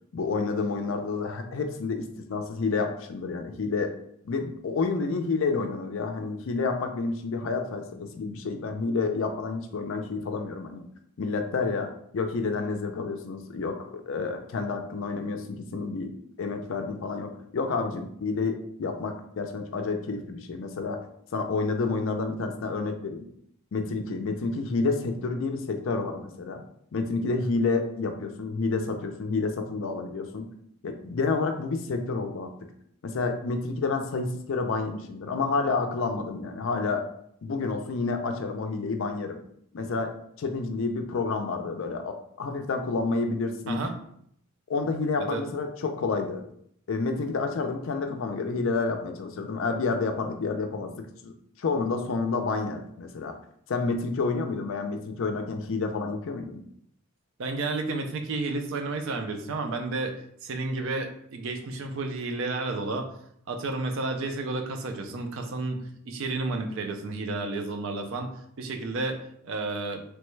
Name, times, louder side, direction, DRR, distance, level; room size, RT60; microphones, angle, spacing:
voice 1, 0.1-4.0 4.2-10.8 11.2-11.9 12.1-16.1 16.4-21.0 21.3-23.3 23.7-26.6 26.9-30.5 30.8-32.7 33.0-37.1 37.4-39.4 39.7-43.9 44.7-46.4 46.9-51.3 51.6-53.4 53.7-56.6, left 4 dB, 60° left, 6 dB, 0.4 m, -29 dB
voice 2, 57.4-63.2 63.5-70.0, right 3 dB, 65° right, 5 dB, 0.4 m, -31 dB
3.1 x 2.2 x 3.1 m, 0.68 s
head